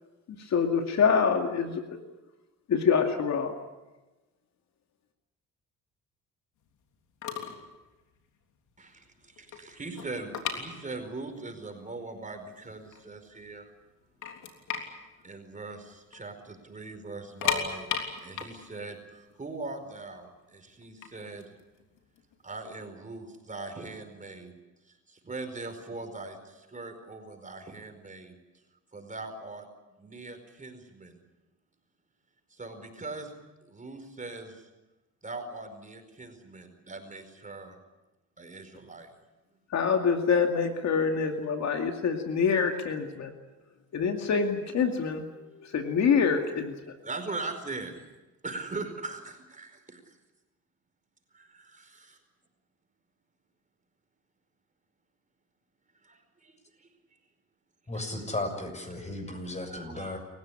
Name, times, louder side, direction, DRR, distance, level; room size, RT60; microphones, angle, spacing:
voice 1, 0.3-1.8 2.7-3.5 39.7-43.3 43.9-46.8, left 6 dB, 65° left, 4 dB, 2.4 m, -26 dB
sound 1, 6.9-7.0 7.2-7.7 7.9-8.2 8.7-8.8 9.1-11.3 11.6-11.7 12.3-12.4 12.8-13.5 13.8-13.9 14.2-16.2 16.5-16.6 17.2-20.1 20.8-22.6, left 7 dB, 80° left, 3.4 m, -34 dB
voice 2, 8.8-13.7 15.2-17.9 18.2-21.5 22.4-24.5 25.1-28.4 28.9-29.7 30.0-31.2 32.5-33.3 33.6-34.7 35.2-37.8 38.4-39.1 47.0-48.0 48.4-50.1 51.3-52.2 56.0-56.9 57.9-58.2 59.3-59.4 59.7-60.2, right 3 dB, 25° right, 5 dB, 4.8 m, -41 dB
voice 3, 57.9-60.2, left 2 dB, 25° left, 5 dB, 6.9 m, -35 dB
28.0 x 15.5 x 10.0 m, 1.1 s
cardioid pair, 90°, 30 cm